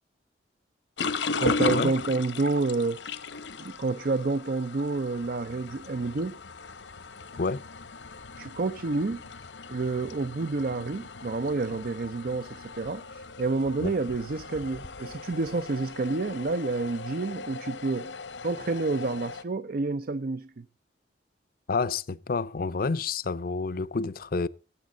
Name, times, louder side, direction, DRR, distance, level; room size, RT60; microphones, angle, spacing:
sound 1, 1.0-19.4, left 4 dB, 85° left, 1.0 m, -37 dB
voice 1, 1.4-3.0 3.6-6.4 8.4-9.2 9.7-18.1 18.4-20.7, right 3 dB, 55° right, 0.5 m, -29 dB
voice 2, 21.7-24.5, left 4 dB, 55° left, 0.5 m, -29 dB
19.5 x 8.3 x 3.8 m
head